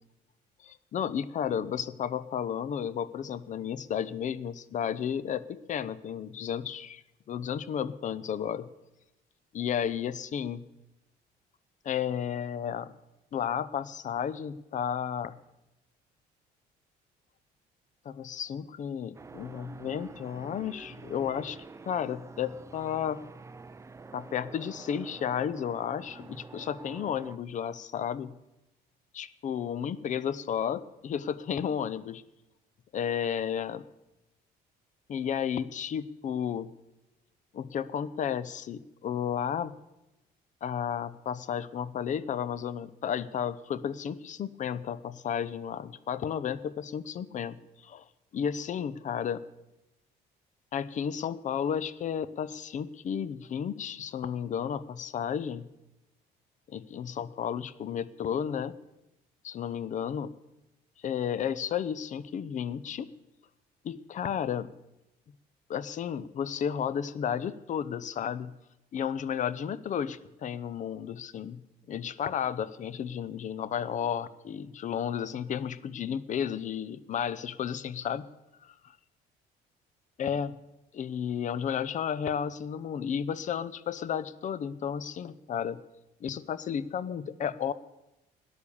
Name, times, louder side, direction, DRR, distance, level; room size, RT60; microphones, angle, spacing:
voice 1, 0.6-7.0 7.3-8.7 9.5-10.7 11.8-12.9 13.3-15.4 18.0-21.6 21.8-23.2 24.1-28.3 29.1-32.2 32.9-33.8 35.1-36.7 37.5-39.8 40.6-48.0 48.3-49.4 50.7-55.7 56.7-58.8 59.4-60.3 61.0-63.1 63.8-64.7 65.7-68.5 68.9-71.6 71.9-78.3 78.6-78.7 80.2-80.5 80.9-85.8 86.2-87.7, left 8 dB, 45° left, 17 dB, 0.7 m, -33 dB
sound 1, 19.1-27.4, right 3 dB, 15° right, 0.5 m, -47 dB
13.5 x 10.0 x 7.1 m, 0.96 s
cardioid pair, 110°, 17 cm